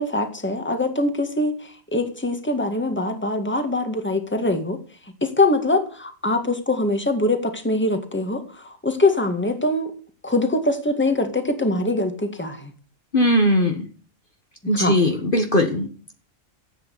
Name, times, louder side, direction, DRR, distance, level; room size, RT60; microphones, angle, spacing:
voice 1, 0.0-4.8 5.2-9.9 10.2-12.7 14.8-15.0, left 2 dB, 10° left, 6 dB, 1.9 m, -23 dB
voice 2, 13.1-13.9 14.7-16.1, left 1 dB, 40° left, 4 dB, 1.6 m, -19 dB
14.5 x 8.9 x 8.5 m, 0.44 s
omnidirectional pair, 1.5 m